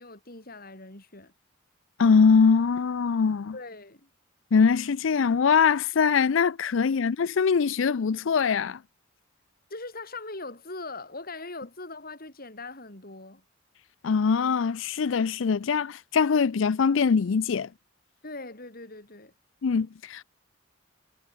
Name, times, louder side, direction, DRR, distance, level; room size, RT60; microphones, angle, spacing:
voice 1, 0.0-1.3 3.5-4.1 6.9-7.0 9.7-13.4 18.2-19.3, left 3 dB, 50° left, 5.8 m, -41 dB
voice 2, 2.0-3.5 4.5-8.8 14.0-17.7 19.6-20.2, left 5 dB, 70° left, 0.5 m, -22 dB
head